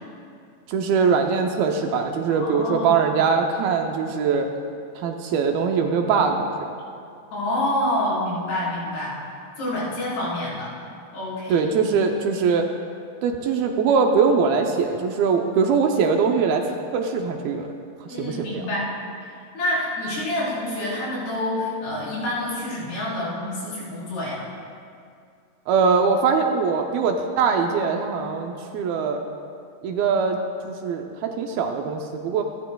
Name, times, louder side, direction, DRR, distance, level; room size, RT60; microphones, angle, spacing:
voice 1, 0.7-4.5 5.0-6.7 11.5-12.7 13.2-16.6 16.9-17.7 18.0-18.6 25.7-29.2 29.8-30.4 30.7-32.4, right 5 dB, 75° right, 3 dB, 2.3 m, -22 dB
voice 2, 2.3-3.1 7.3-9.2 9.6-10.7 11.1-11.7 18.1-18.9 19.5-24.4, left 1 dB, 80° left, -8 dB, 6.2 m, -27 dB
27.5 x 11.5 x 2.3 m, 2.4 s
omnidirectional pair, 4.7 m